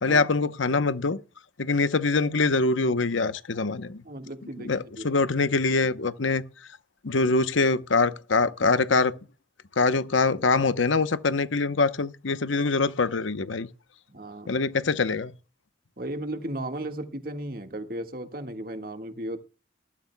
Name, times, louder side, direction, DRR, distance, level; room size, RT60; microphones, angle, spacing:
voice 1, 0.0-1.2 1.6-4.0 4.6-6.4 7.0-9.2 9.8-13.7 14.5-15.3, left 3 dB, 85° left, 0.9 m, -24 dB
voice 2, 4.0-4.7 5.0-5.1 14.1-14.6 16.0-19.4, right 1 dB, 50° right, 1.7 m, -35 dB
20.0 x 13.0 x 2.2 m
head